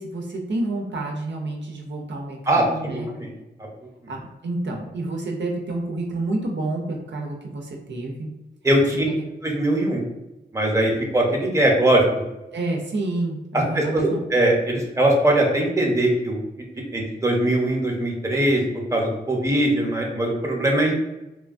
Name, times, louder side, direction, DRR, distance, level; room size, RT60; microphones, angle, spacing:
voice 1, 0.0-3.1 4.1-8.3 8.9-9.1 12.5-14.2, right 2 dB, 75° right, 1 dB, 0.5 m, -29 dB
voice 2, 2.5-3.3 8.6-9.0 9.4-10.0 10.5-12.0 13.5-16.4 16.9-18.6 18.9-21.0, right 1 dB, 15° right, -1 dB, 0.8 m, -21 dB
3.0 x 2.2 x 2.5 m, 0.99 s
cardioid pair, 55°, 19 cm